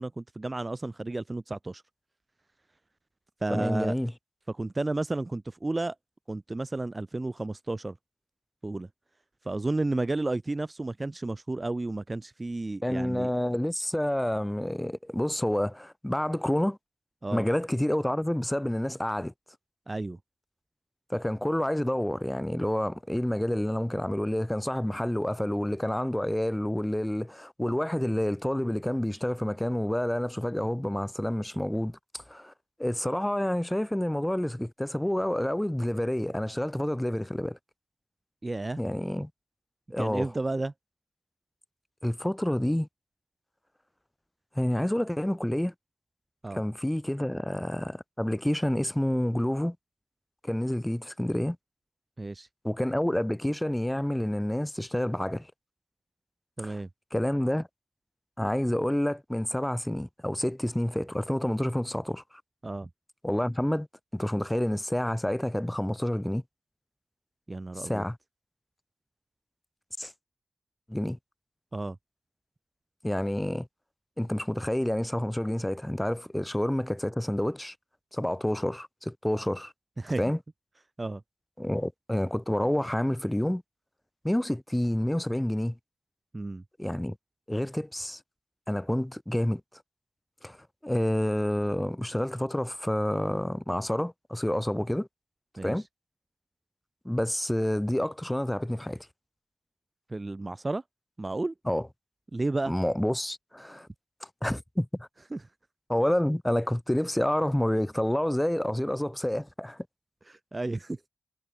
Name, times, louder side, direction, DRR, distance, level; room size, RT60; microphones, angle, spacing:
voice 1, 0.0-1.8 3.4-4.0 4.5-5.9 6.3-7.9 8.6-8.9 9.4-13.3 17.2-17.5 19.9-20.2 38.4-38.8 40.0-40.7 46.4-46.6 52.2-52.5 56.6-56.9 62.6-62.9 67.5-68.1 71.7-72.0 80.0-80.2 81.0-81.2 86.3-86.6 95.6-95.8 100.1-100.8 101.2-101.5 102.3-102.7 105.3-105.4 110.3-111.0, right 2 dB, 30° right, 0.9 m, -32 dB
voice 2, 3.5-4.1 12.8-16.8 17.3-19.3 21.1-32.5 32.8-37.6 38.8-39.3 39.9-40.3 42.0-42.9 44.6-45.7 46.5-49.8 50.4-51.6 52.6-55.5 56.6-56.8 57.1-57.7 58.4-62.2 63.2-63.9 64.1-66.4 67.8-68.2 70.0-70.1 70.9-71.2 73.0-73.7 74.2-77.7 78.1-79.7 80.2-80.4 81.6-83.6 84.2-85.8 86.8-87.2 87.5-88.2 88.7-89.6 90.4-90.6 90.8-95.1 95.6-95.8 97.1-99.1 101.7-101.9 102.7-103.9 104.4-105.1 105.9-109.9, left 1 dB, 10° left, 1.7 m, -28 dB
supercardioid pair, 40°, 0 cm